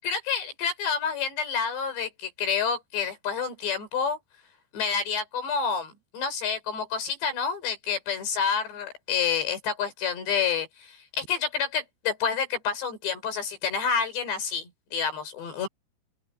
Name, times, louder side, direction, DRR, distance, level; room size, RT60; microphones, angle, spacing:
voice 1, 0.1-4.2 4.7-15.7, left 6 dB, 70° left, 6.7 m, -29 dB
open air
omnidirectional pair, 5.2 m